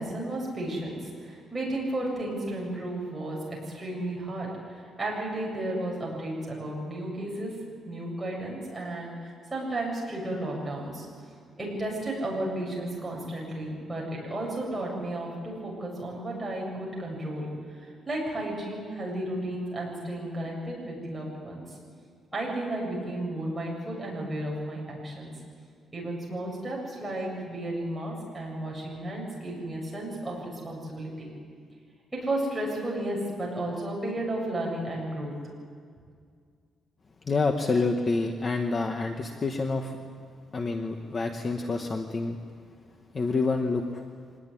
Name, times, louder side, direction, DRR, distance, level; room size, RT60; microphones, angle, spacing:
voice 1, 0.0-7.5 7.8-11.1 11.6-17.5 17.8-21.8 22.3-25.3 25.9-31.3 32.1-35.3, right 1 dB, 10° right, -3 dB, 7.3 m, -33 dB
voice 2, 37.3-40.0 40.5-42.4 43.1-44.0, left 3 dB, 25° left, 4 dB, 1.2 m, -28 dB
25.0 x 19.5 x 10.0 m, 2.1 s
cardioid pair, 175°, 0 cm